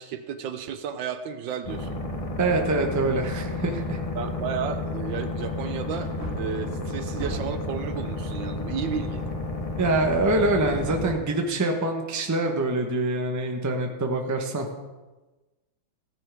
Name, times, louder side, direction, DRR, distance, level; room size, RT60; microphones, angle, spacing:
voice 1, 0.0-2.0 4.2-9.2, right 7 dB, 75° right, 9 dB, 1.4 m, -33 dB
sound 1, 1.6-11.1, left 2 dB, 30° left, 0.7 m, -31 dB
voice 2, 2.4-4.0 9.8-14.7, right 2 dB, 15° right, 3 dB, 0.7 m, -25 dB
Wood, 5.9-7.7 10.4-11.2 11.5-11.6, right 1 dB, 30° right, 2.2 m, -39 dB
16.0 x 9.7 x 3.5 m, 1.2 s
omnidirectional pair, 2.2 m